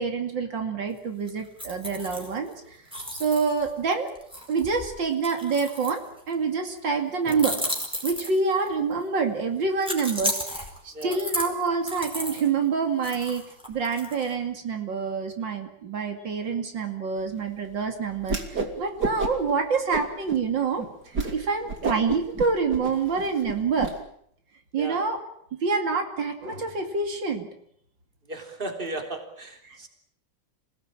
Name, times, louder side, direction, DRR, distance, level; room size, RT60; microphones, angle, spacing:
voice 1, 0.0-2.8 3.2-4.1 4.5-7.7 8.0-13.4 13.7-18.4 18.8-23.9 24.7-25.2 25.5-27.5 29.6-29.9, right 5 dB, 75° right, 5 dB, 3.1 m, -27 dB
sound 1, 1.3-2.5 2.9-6.3 7.3-8.7 9.8-12.5 13.0-14.3, equal, 5° right, 5.0 m, -34 dB
Whoosh swoosh swish, 18.2-18.7 19.0-19.5 19.9-20.4 20.8-20.9 21.1-21.3 21.7-23.9, right 3 dB, 60° right, 3.5 m, -29 dB
voice 2, 28.3-29.9, right 2 dB, 25° right, 4 dB, 3.6 m, -35 dB
27.5 x 18.0 x 8.9 m, 0.69 s
omnidirectional pair, 2.0 m